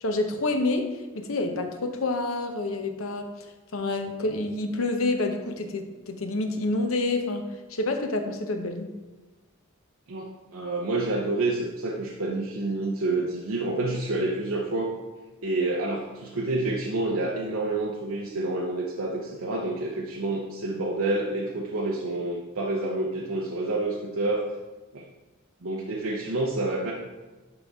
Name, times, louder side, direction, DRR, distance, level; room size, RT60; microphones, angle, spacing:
voice 1, 0.0-3.3 3.7-8.9, left 2 dB, 85° left, 6 dB, 0.8 m, -28 dB
voice 2, 10.1-15.0 15.4-24.5 24.9-25.0 25.6-26.9, right 2 dB, 85° right, -2 dB, 0.8 m, -28 dB
11.5 x 4.0 x 3.6 m, 1.2 s
head